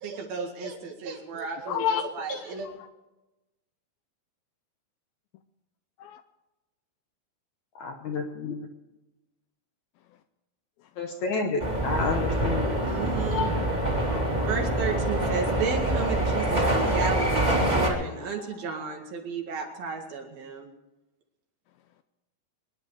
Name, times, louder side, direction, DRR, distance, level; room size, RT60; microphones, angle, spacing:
voice 1, 0.0-2.7 12.8-13.5 14.4-20.7, right 5 dB, 65° right, 3.7 m, -33 dB
voice 2, 1.7-2.0 2.3-2.4 13.3-13.8 14.1-14.5, left 9 dB, 80° left, 2.3 m, -29 dB
voice 3, 7.8-8.7 11.0-12.8, left 4 dB, 65° left, 2.0 m, -30 dB
sound 1, 11.6-17.9, right 1 dB, 15° right, 2.2 m, -25 dB
24.5 x 10.5 x 4.8 m
omnidirectional pair, 4.7 m